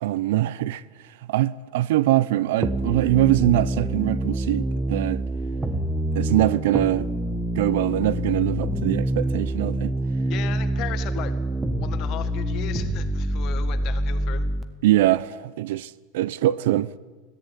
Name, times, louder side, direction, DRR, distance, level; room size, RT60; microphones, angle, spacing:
voice 1, 0.0-0.8 1.3-5.2 6.1-7.1 7.6-9.9 14.8-16.9, right 15 dB, 80° right, 0.8 m, -23 dB
sound 1, 2.6-14.6, right 1 dB, 10° right, 1.3 m, -26 dB
voice 2, 10.3-11.4 11.8-14.5, left 11 dB, 45° left, 1.9 m, -36 dB
21.0 x 14.5 x 9.9 m
supercardioid pair, 150°, 0 cm